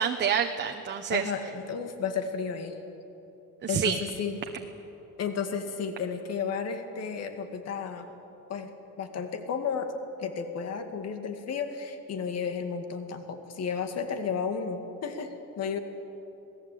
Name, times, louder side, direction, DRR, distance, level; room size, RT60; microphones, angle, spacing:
voice 1, 0.0-1.3 3.6-4.0, right 7 dB, 30° right, 4 dB, 1.0 m, -27 dB
voice 2, 1.1-2.8 3.7-4.4 5.2-8.1 8.5-9.9 10.2-15.8, left 6 dB, 50° left, 6 dB, 2.1 m, -33 dB
27.0 x 19.0 x 8.6 m, 3.0 s
cardioid pair, 155°, 33 cm